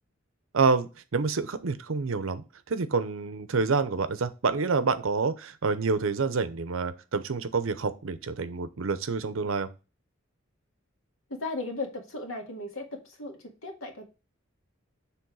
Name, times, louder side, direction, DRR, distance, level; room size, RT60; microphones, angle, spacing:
voice 1, 0.5-9.7, right 4 dB, 75° right, 13 dB, 0.6 m, -28 dB
voice 2, 11.3-14.1, left 2 dB, 90° left, 3 dB, 1.7 m, -36 dB
7.1 x 3.4 x 4.7 m, 0.31 s
head